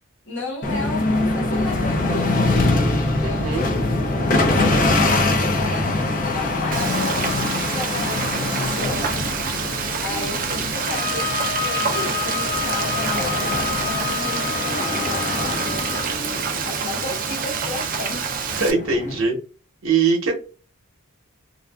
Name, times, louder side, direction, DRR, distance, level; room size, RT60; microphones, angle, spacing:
voice 1, 0.2-3.9 4.3-9.2 10.0-16.1 16.6-18.3 18.9-19.0, left 2 dB, 60° left, 1.2 m, -34 dB
sound 1, 0.6-19.2, left 2 dB, 40° left, 0.5 m, -24 dB
voice 2, 3.2-3.6 15.5-15.6 18.5-19.4 19.8-20.3, right 4 dB, 65° right, 0.8 m, -21 dB
Frying (food), 6.7-18.7, right 6 dB, 40° right, 0.5 m, -27 dB
sound 2, 10.7-16.1, left 6 dB, 10° left, 1.0 m, -29 dB
2.5 x 2.3 x 2.3 m
head